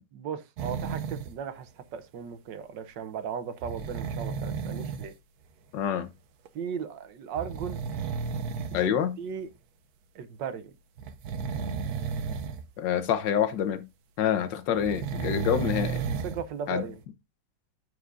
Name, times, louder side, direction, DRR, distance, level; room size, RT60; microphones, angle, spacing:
voice 1, 0.1-5.1 6.5-7.9 8.8-8.9 9.2-9.5 10.1-10.7 16.2-17.0, right 7 dB, 80° right, 1.5 m, -36 dB
sound 1, 0.6-1.3 3.6-5.1 6.5-6.6 7.4-8.8 9.5-9.6 11.0-12.7 13.0-13.1 14.7-16.5 17.0-17.1, right 6 dB, 65° right, 1.2 m, -33 dB
voice 2, 5.7-6.1 8.7-9.1 12.8-13.8 14.2-16.0 16.7-16.8, left 9 dB, 80° left, 1.5 m, -27 dB
13.5 x 4.7 x 2.5 m
omnidirectional pair, 1.9 m